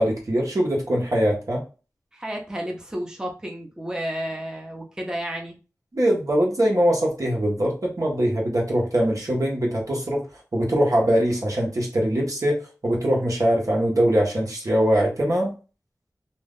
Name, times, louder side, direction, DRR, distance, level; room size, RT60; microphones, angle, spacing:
voice 1, 0.0-1.6 5.9-10.2 10.5-15.5, equal, 60° right, -2 dB, 1.1 m, -22 dB
voice 2, 2.1-5.6, equal, 10° right, 0 dB, 0.7 m, -31 dB
2.6 x 2.4 x 3.5 m, 0.34 s
wide cardioid pair, 55°, 6 cm